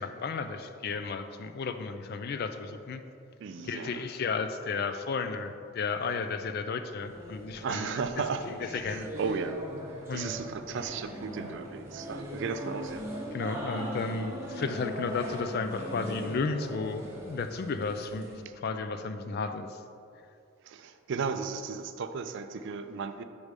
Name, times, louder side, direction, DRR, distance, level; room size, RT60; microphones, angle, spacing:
voice 1, 0.0-3.0 3.6-7.9 8.7-9.1 10.1-10.3 13.3-18.3 18.6-19.8, left 4 dB, 45° left, 9 dB, 0.3 m, -33 dB
voice 2, 3.4-4.1 7.6-9.6 10.1-13.1 18.4-18.5 20.6-23.2, right 5 dB, 55° right, 9 dB, 0.3 m, -35 dB
sound 1, 7.0-18.4, equal, 10° right, 0.9 m, -40 dB
5.3 x 4.8 x 5.1 m, 2.5 s
head